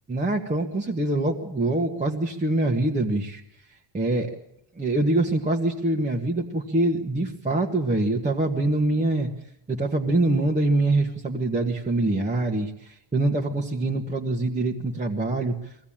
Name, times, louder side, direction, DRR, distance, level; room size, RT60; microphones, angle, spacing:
voice 1, 0.1-3.4 3.9-4.3 4.8-9.3 9.7-15.5, right 2 dB, 15° right, -1 dB, 1.6 m, -24 dB
23.0 x 16.5 x 8.8 m, 0.79 s
cardioid pair, 170°, 46 cm